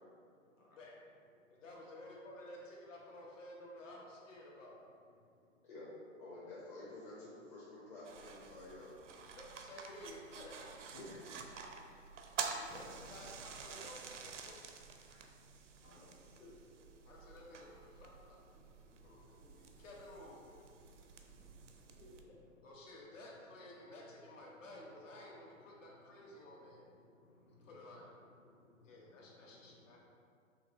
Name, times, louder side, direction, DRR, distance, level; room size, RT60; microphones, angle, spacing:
voice 1, 1.5-4.8 9.3-10.6 12.4-14.7 17.0-18.4 19.0-20.5 22.6-26.8 27.6-28.1 28.8-30.0, left 1 dB, 70° left, -2 dB, 1.3 m, -53 dB
voice 2, 6.2-9.0 10.9-11.2, left 2 dB, 40° left, -8 dB, 1.1 m, -50 dB
sound 1, 8.0-22.2, right 5 dB, 65° right, 0.6 m, -49 dB
voice 3, 15.8-16.5 19.0-19.1 19.4-19.5 22.0-22.4 27.3-27.7 29.0-29.1, left 2 dB, 90° left, -4 dB, 1.2 m, -60 dB
5.6 x 3.2 x 3.0 m, 2.2 s
hypercardioid pair, 140°, 40 cm